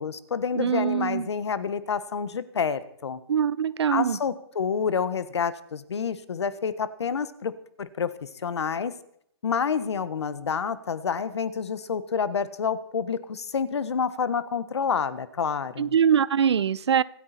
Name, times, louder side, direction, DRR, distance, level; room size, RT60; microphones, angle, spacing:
voice 1, 0.0-3.2 3.9-7.5 7.8-8.9 9.4-16.0, left 6 dB, 85° left, 1.4 m, -28 dB
voice 2, 0.6-1.3 3.3-4.2 15.8-17.0, right 7 dB, 85° right, 0.7 m, -23 dB
25.5 x 9.5 x 4.3 m
hypercardioid pair, 165°, 14 cm